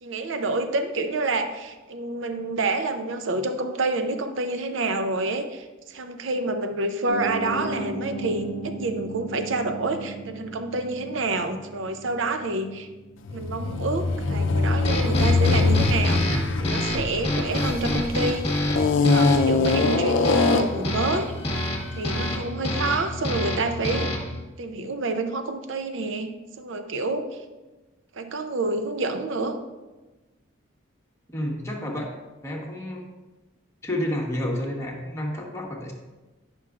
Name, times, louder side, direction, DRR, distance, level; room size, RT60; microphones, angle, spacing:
voice 1, 0.0-12.9 13.3-16.2 16.6-18.4 19.0-21.3 21.9-24.1 24.6-27.3 28.1-29.6, right 2 dB, 70° right, 7 dB, 0.6 m, -28 dB
Piano, 7.1-13.6, right 1 dB, 45° right, 1.8 m, -36 dB
sound 1, 13.3-18.1 18.7-20.9, left 3 dB, 70° left, 0.5 m, -23 dB
sound 2, 14.8-24.4, left 1 dB, 30° left, 1.3 m, -28 dB
voice 2, 31.3-32.1 32.4-33.0 33.8-35.9, left 1 dB, 15° left, -2 dB, 1.1 m, -30 dB
10.0 x 6.1 x 2.4 m, 1.2 s
head